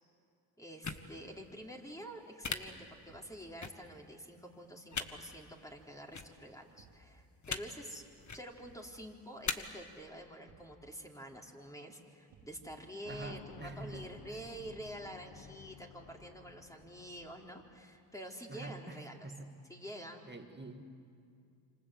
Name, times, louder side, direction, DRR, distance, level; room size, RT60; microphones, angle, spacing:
voice 1, 0.6-8.0 8.3-19.3 19.7-20.3, equal, 5° left, 0 dB, 3.9 m, -48 dB
sound 1, 0.8-1.0 2.4-2.6 3.6-3.7 4.9-5.1 6.1-6.3 7.4-7.6 8.2-8.4 9.4-9.5, left 5 dB, 40° left, 1.8 m, -36 dB
Thump thud, 3.1-3.4 4.9-5.3 6.8-7.1 8.6-9.0 10.4-10.8 12.3-12.6 14.1-14.5 16.0-16.3, right 5 dB, 90° right, 3.2 m, -62 dB
sound 2, 13.0-18.0, left 6 dB, 55° left, 1.9 m, -55 dB
voice 2, 13.1-14.1 18.5-19.7 20.3-20.8, right 3 dB, 25° right, 6 dB, 2.3 m, -46 dB
27.5 x 26.0 x 7.8 m, 2.4 s
supercardioid pair, 60°, 45 cm